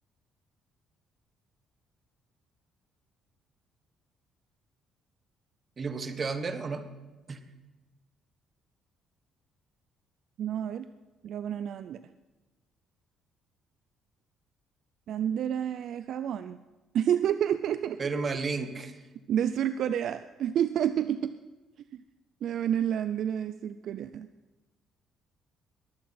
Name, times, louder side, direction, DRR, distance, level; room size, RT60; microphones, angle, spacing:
voice 1, 5.8-6.9 7.3-7.4 18.0-18.9, right 4 dB, 30° right, 9 dB, 1.2 m, -32 dB
voice 2, 10.4-10.9 11.2-12.0 15.1-16.6 16.9-18.0 19.3-21.3 21.9-22.0 22.4-24.3, right 9 dB, 60° right, 12 dB, 0.4 m, -29 dB
21.0 x 8.7 x 5.6 m, 1.1 s
cardioid pair, 135°, 0 cm